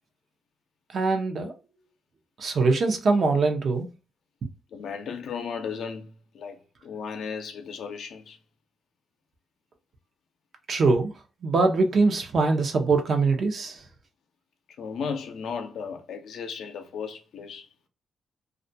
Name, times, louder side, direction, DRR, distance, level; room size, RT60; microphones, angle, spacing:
voice 1, 0.9-1.5 2.4-3.9 10.7-11.1 11.4-13.8, right 3 dB, 60° right, 0.6 m, -23 dB
voice 2, 4.7-8.4 14.8-17.7, left 6 dB, 80° left, 0.5 m, -35 dB
2.4 x 2.2 x 2.6 m
cardioid pair, 70°, 0 cm